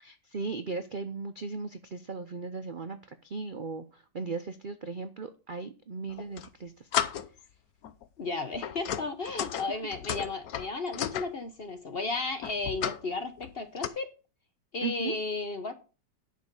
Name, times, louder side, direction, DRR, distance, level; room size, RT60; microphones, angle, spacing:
voice 1, 0.0-6.9 14.8-15.2, right 4 dB, 65° right, 0.5 m, -37 dB
sound 1, 6.1-6.5 6.9-7.5 7.8-8.0 8.5-11.3 12.4-13.0 13.4-13.9, left 10 dB, 65° left, 1.1 m, -33 dB
voice 2, 8.2-14.1 14.7-15.7, left 3 dB, 45° left, 0.9 m, -34 dB
10.5 x 6.8 x 5.4 m
omnidirectional pair, 1.9 m